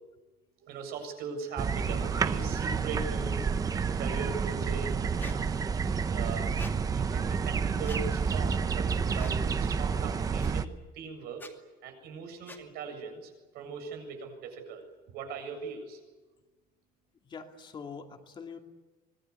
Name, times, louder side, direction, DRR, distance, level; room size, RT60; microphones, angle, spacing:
voice 1, 0.6-3.4 4.0-5.5 5.8-6.5 6.9-11.5 11.8-16.0, right 5 dB, 75° right, 5 dB, 7.6 m, -40 dB
sound 1, 1.6-10.7, right 6 dB, 20° right, 0.8 m, -29 dB
Squeak, 5.2-5.4 6.6-6.7 7.8-8.0 9.1-9.4 10.4-10.5 11.3-11.5 12.5-12.6, left 3 dB, 10° left, 2.5 m, -46 dB
voice 2, 17.2-18.6, left 5 dB, 30° left, 3 dB, 2.6 m, -43 dB
25.0 x 21.0 x 9.8 m, 1.2 s
cardioid pair, 170°, 16 cm